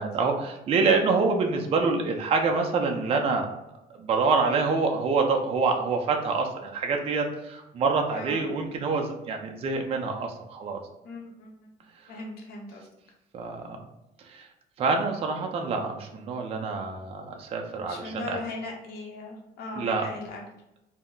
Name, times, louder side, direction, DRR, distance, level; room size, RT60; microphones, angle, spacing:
voice 1, 0.0-3.5 4.0-10.8 13.3-13.8 14.2-14.5 14.8-18.4 19.8-20.1, right 4 dB, 35° right, 2 dB, 0.4 m, -26 dB
voice 2, 11.0-11.5 12.1-12.9 17.7-20.4, left 3 dB, 70° left, 0 dB, 0.7 m, -38 dB
2.1 x 2.0 x 3.7 m, 0.90 s
cardioid pair, 110°, 17 cm